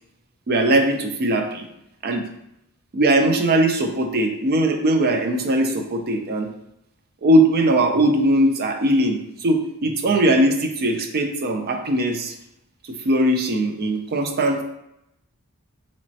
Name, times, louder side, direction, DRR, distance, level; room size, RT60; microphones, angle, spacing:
voice 1, 0.5-1.7 2.0-2.3 2.9-6.5 7.2-12.3 13.0-14.6, right 1 dB, 45° right, 4 dB, 0.4 m, -20 dB
3.1 x 3.1 x 2.7 m, 0.83 s
head